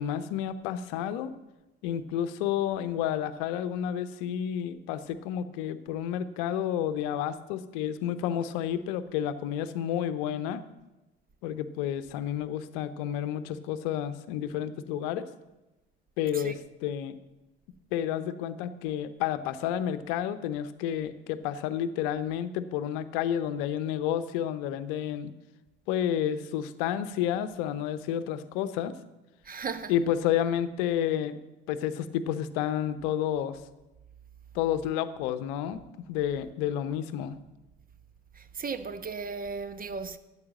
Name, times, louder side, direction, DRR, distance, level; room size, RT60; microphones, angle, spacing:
voice 1, 0.0-1.3 1.8-10.6 11.4-15.3 16.2-17.2 17.9-25.3 25.9-28.9 29.9-31.4 31.7-33.6 34.5-35.8 36.1-37.4, left 10 dB, 65° left, 0.8 m, -30 dB
voice 2, 29.4-29.9 38.3-40.2, right 5 dB, 30° right, 1.0 m, -36 dB
13.5 x 8.2 x 7.3 m
figure-of-eight pair, 55°, 29 cm